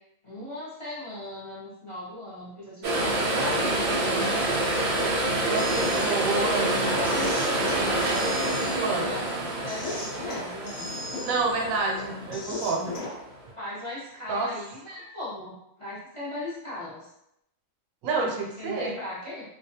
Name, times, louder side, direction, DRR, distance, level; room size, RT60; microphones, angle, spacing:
voice 1, 0.2-4.5 5.4-10.9 13.6-15.5 15.8-17.1 18.6-19.4, left 1 dB, 35° left, -9 dB, 0.6 m, -38 dB
sound 1, 2.8-13.1 13.5-13.6, right 1 dB, 65° right, 0.4 m, -27 dB
voice 2, 5.4-6.8 8.7-9.2 11.2-13.0 14.3-14.6 18.0-19.0, right 3 dB, 85° right, 0 dB, 1.0 m, -28 dB
sound 2, 5.6-13.2, left 2 dB, 80° left, 1.0 m, -37 dB
2.3 x 2.3 x 2.7 m, 0.81 s
omnidirectional pair, 1.4 m